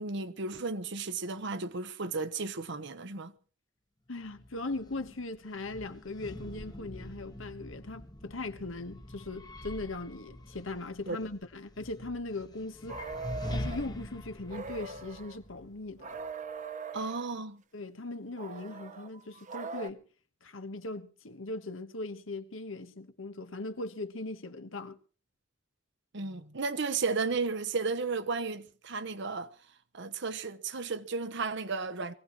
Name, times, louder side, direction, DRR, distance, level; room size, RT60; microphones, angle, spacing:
voice 1, 0.0-3.3 11.1-11.2 16.9-17.6 26.1-29.5 29.9-32.1, right 4 dB, 65° right, 1.1 m, -34 dB
voice 2, 4.1-13.0 13.5-16.2 17.7-20.0 20.4-25.0, left 2 dB, 85° left, 1.4 m, -39 dB
sound 1, 4.2-16.3, left 1 dB, 20° left, 1.1 m, -44 dB
sound 2, 12.9-13.9 14.5-15.4 16.0-17.3 18.4-19.9, right 4 dB, 40° right, 0.8 m, -41 dB
23.0 x 16.5 x 3.1 m
head